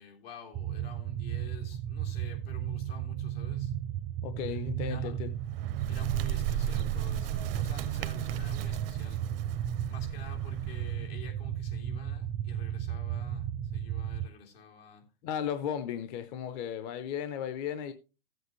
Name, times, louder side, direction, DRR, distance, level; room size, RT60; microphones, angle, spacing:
voice 1, 0.0-3.7 4.5-5.2 5.9-9.2 9.9-15.0, left 2 dB, 85° left, 3.5 m, -49 dB
sound 1, 0.5-14.3, right 10 dB, 20° right, 0.4 m, -34 dB
voice 2, 4.2-5.3 15.2-17.9, left 9 dB, 45° left, 0.8 m, -35 dB
Bird, 5.3-11.1, right 10 dB, 75° right, 0.6 m, -36 dB
14.5 x 7.9 x 3.2 m
supercardioid pair, 150°, 29 cm